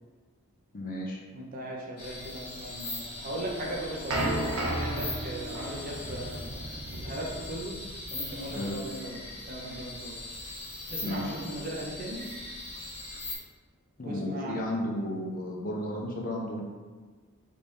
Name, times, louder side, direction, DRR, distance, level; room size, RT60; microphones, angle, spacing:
voice 1, 0.7-1.2 8.5-8.8 11.0-11.3 14.0-16.6, left 1 dB, 40° left, -1 dB, 0.6 m, -33 dB
voice 2, 1.3-6.6 7.0-7.8 8.1-9.2 9.5-10.2 10.9-12.2 14.0-14.6, right 1 dB, 40° right, -3 dB, 0.6 m, -38 dB
sound 1, 2.0-13.4, left 2 dB, 90° left, 1.2 m, -41 dB
sound 2, 3.3-8.3, right 1 dB, 90° right, 0.7 m, -34 dB
3.4 x 3.2 x 2.7 m, 1.4 s
head